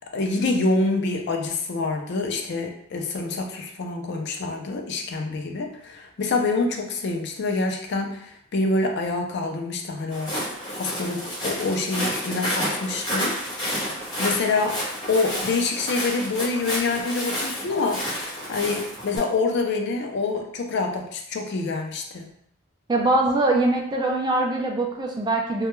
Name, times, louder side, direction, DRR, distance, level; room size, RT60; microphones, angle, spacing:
voice 1, 0.1-10.3 10.7-14.8 15.1-18.1 18.5-22.3, left 3 dB, 55° left, 3 dB, 0.4 m, -26 dB
Walk footsteps, 10.1-19.2, equal, 20° left, 0.8 m, -30 dB
voice 2, 22.9-25.7, right 2 dB, 20° right, 0 dB, 0.3 m, -22 dB
2.2 x 2.1 x 3.0 m, 0.69 s
head